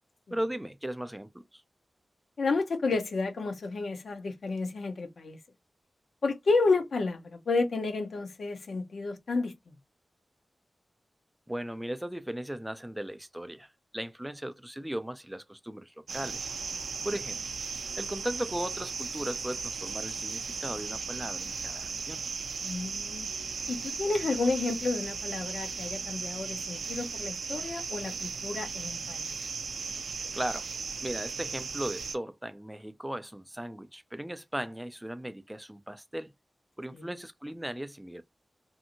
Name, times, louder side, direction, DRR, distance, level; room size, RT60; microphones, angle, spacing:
voice 1, 0.3-1.6 11.5-16.5 17.0-17.4 18.0-22.2 30.3-30.7 31.0-36.3 36.8-38.2, right 1 dB, 5° right, 0.4 m, -37 dB
voice 2, 2.4-5.4 6.2-9.7 22.6-23.3 23.7-29.3 36.9-37.1, left 3 dB, 70° left, 0.6 m, -31 dB
sound 1, 16.1-32.2, right 5 dB, 80° right, 0.4 m, -36 dB
2.6 x 2.5 x 2.7 m
wide cardioid pair, 100°, 0 cm